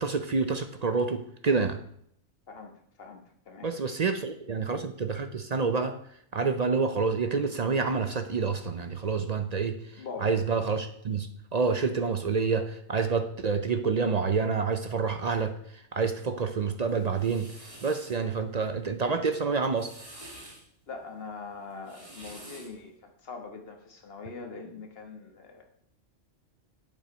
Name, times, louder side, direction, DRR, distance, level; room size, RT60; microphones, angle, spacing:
voice 1, 0.0-1.8 3.6-6.0 6.3-15.5 15.9-17.5 17.8-19.9, right 4 dB, 45° right, 8 dB, 0.5 m, -28 dB
voice 2, 2.5-3.7 10.0-10.4 20.9-25.6, left 4 dB, 50° left, 4 dB, 1.5 m, -42 dB
sound 1, 16.9-18.2 19.6-20.6 21.7-22.8, right 1 dB, 25° right, 2.1 m, -48 dB
8.4 x 7.3 x 5.1 m, 0.69 s
omnidirectional pair, 1.3 m